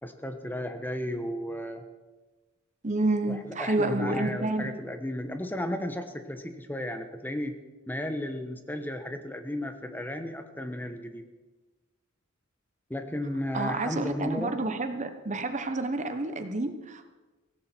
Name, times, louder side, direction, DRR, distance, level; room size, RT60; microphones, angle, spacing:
voice 1, 0.0-1.8 3.3-7.6 7.9-11.2 12.9-14.6, left 1 dB, 10° left, 7 dB, 1.2 m, -34 dB
voice 2, 2.8-4.8 13.5-17.1, right 2 dB, 35° right, 9 dB, 1.1 m, -29 dB
17.0 x 16.5 x 4.6 m, 1.2 s
head